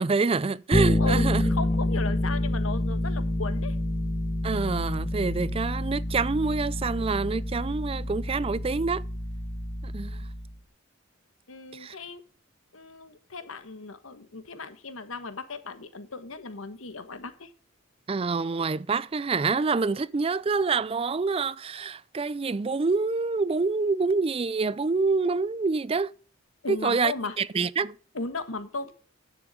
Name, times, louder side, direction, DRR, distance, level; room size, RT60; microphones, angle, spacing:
voice 1, 0.0-1.5 4.4-9.0 9.8-10.3 11.7-12.0 18.1-26.1 26.7-28.0, right 4 dB, 30° right, 0.4 m, -27 dB
Bass guitar, 0.7-10.6, left 1 dB, 20° left, 1.1 m, -28 dB
voice 2, 1.0-3.8 11.5-12.2 12.7-17.5 26.6-27.4 28.1-28.9, left 3 dB, 85° left, 1.4 m, -36 dB
10.5 x 7.2 x 5.0 m
head